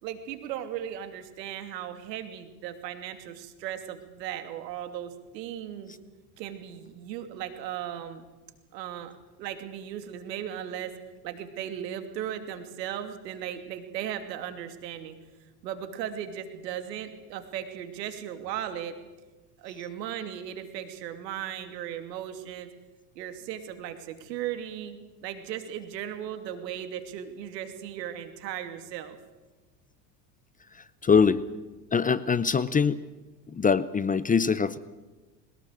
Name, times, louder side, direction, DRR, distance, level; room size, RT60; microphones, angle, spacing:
voice 1, 0.0-5.9 6.4-8.2 8.7-9.1 9.4-10.9 11.2-15.2 15.6-19.0 19.6-22.7 23.1-29.2, right 10 dB, 80° right, 8 dB, 2.9 m, -37 dB
voice 2, 31.0-31.4 31.9-33.0 33.5-34.8, left 6 dB, 15° left, 17 dB, 0.7 m, -23 dB
21.5 x 19.0 x 7.9 m, 1.2 s
hypercardioid pair, 95°, 49 cm